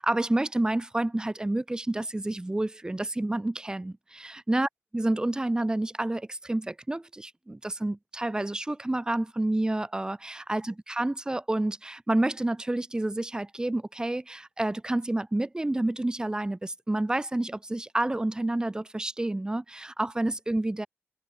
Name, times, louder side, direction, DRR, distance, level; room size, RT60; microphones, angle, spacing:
voice 1, 0.0-20.9, right 1 dB, 15° right, 6.1 m, -29 dB
wide cardioid pair, 100°, 5 cm